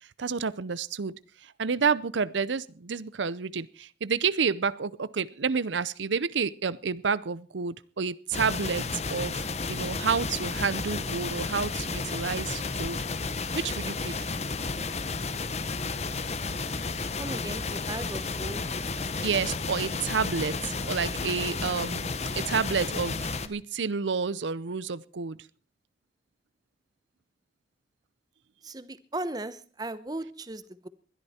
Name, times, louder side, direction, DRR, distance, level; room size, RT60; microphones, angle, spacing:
voice 1, 0.0-1.1 1.4-13.0 13.5-14.3 19.2-25.4, right 5 dB, 90° right, 0.6 m, -30 dB
sound 1, 8.3-23.5, left 4 dB, 35° left, 1.0 m, -32 dB
voice 2, 17.2-18.7 28.6-30.9, right 2 dB, 20° right, 0.8 m, -37 dB
21.0 x 12.5 x 4.3 m
head